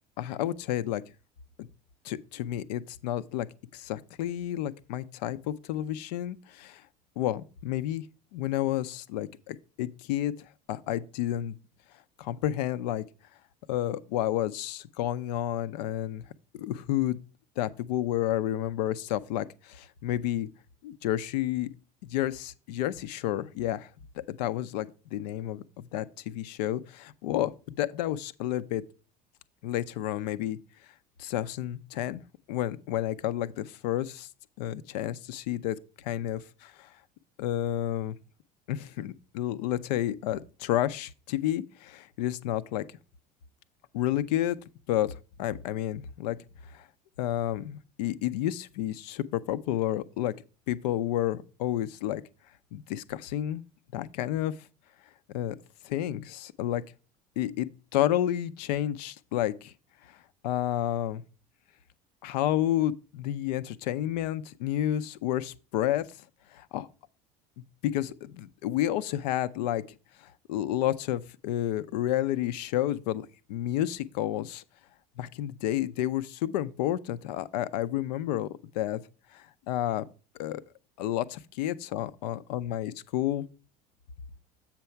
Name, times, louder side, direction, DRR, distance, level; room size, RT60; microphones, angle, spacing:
voice 1, 0.2-1.0 1.6-1.7 2.0-3.5 3.7-6.8 7.2-8.0 8.3-10.3 10.7-11.6 12.2-13.0 13.7-16.2 16.5-17.2 17.6-20.5 20.8-21.7 22.0-23.9 24.3-28.8 29.6-30.6 31.2-32.2 32.5-34.3 34.6-36.9 37.4-38.2 38.7-42.8 43.9-44.6 44.9-45.1 45.4-46.4 46.7-46.9 47.2-50.3 50.7-52.2 52.7-53.6 53.9-54.5 55.3-55.6 55.8-56.8 57.4-59.7 60.4-61.2 62.2-66.1 66.5-66.9 67.8-69.8 70.5-74.6 75.2-78.5 78.7-79.0 79.3-80.0 80.3-80.6 81.0-83.5, left 12 dB, 80° left, 0.5 m, -30 dB
7.6 x 5.8 x 4.5 m
hypercardioid pair, 80°, 21 cm